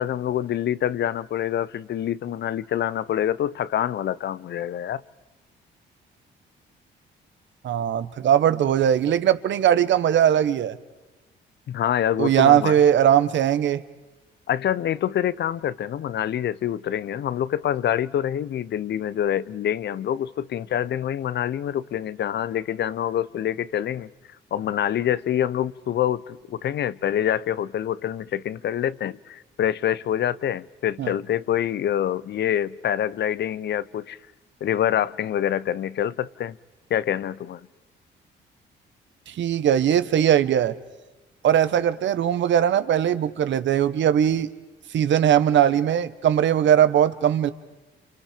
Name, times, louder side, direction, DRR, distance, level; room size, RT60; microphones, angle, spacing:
voice 1, 0.0-5.0 11.7-12.7 14.5-24.1 24.5-34.2 34.6-36.6 36.9-37.6, left 10 dB, 60° left, 0.7 m, -26 dB
voice 2, 7.6-10.8 12.2-13.8 31.0-31.1 39.3-40.7 41.4-44.5 44.9-47.5, right 10 dB, 70° right, 1.2 m, -20 dB
29.5 x 27.5 x 5.2 m
cardioid pair, 90°, 20 cm